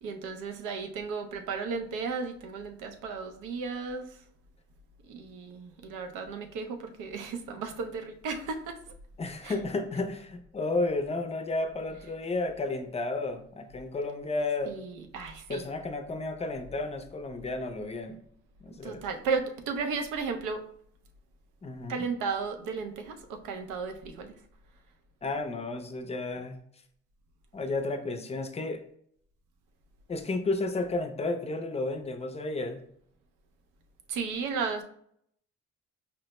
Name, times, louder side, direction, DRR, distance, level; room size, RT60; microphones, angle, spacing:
voice 1, 0.0-4.2 5.1-8.8 9.4-9.5 14.7-15.6 18.7-20.6 21.9-24.3 34.1-34.8, right 5 dB, 90° right, 6 dB, 0.5 m, -34 dB
voice 2, 9.2-14.7 15.5-18.2 18.6-19.0 21.6-22.1 25.2-26.6 27.5-28.8 30.1-32.8, left 2 dB, 20° left, 7 dB, 0.4 m, -32 dB
4.4 x 2.0 x 2.9 m, 0.66 s
cardioid pair, 90°, 30 cm